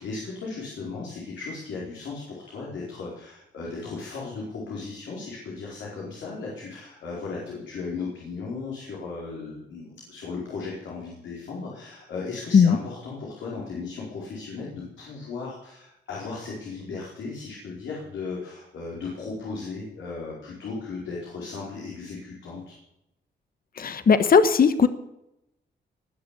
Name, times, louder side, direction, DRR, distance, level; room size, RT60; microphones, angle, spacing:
voice 1, 0.0-22.8, left 4 dB, 80° left, -4 dB, 4.7 m, -36 dB
voice 2, 23.8-24.9, left 6 dB, 50° left, 11 dB, 1.2 m, -17 dB
19.5 x 7.0 x 8.3 m, 0.87 s
cardioid pair, 70°, 19 cm